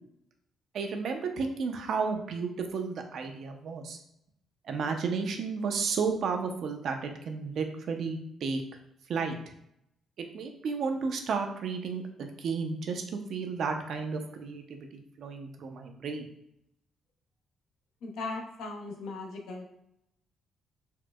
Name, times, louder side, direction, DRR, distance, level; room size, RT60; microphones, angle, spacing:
voice 1, 0.7-4.0 4.7-8.6 9.1-9.4 10.2-13.0 13.3-16.3, right 5 dB, 65° right, 5 dB, 0.5 m, -32 dB
voice 2, 18.0-19.7, left 3 dB, 85° left, 1 dB, 0.6 m, -38 dB
4.3 x 2.1 x 2.3 m, 0.78 s
cardioid pair, 90°, 0 cm